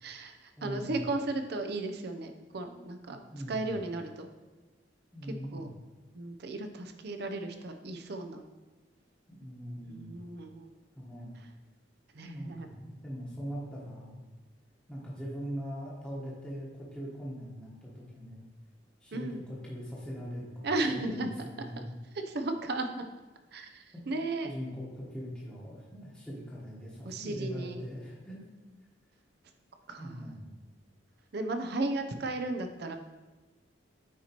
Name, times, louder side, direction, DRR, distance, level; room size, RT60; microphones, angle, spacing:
voice 1, 0.0-3.2 3.5-4.3 5.5-5.7 6.1-8.4 9.8-10.7 12.1-12.7 19.1-19.4 20.6-21.5 21.8-21.9 22.3-23.0 23.5-24.5 27.0-27.8 29.9-30.4 31.3-33.0, right 2 dB, 60° right, 6 dB, 0.6 m, -35 dB
voice 2, 0.6-1.0 3.3-3.7 5.1-5.7 9.3-10.2 11.0-11.3 12.2-14.2 14.9-18.4 19.0-20.7 20.9-21.9 23.9-24.1 24.4-28.5 30.0-30.5, equal, 5° left, -7 dB, 1.1 m, -41 dB
9.1 x 4.4 x 2.9 m, 1.2 s
head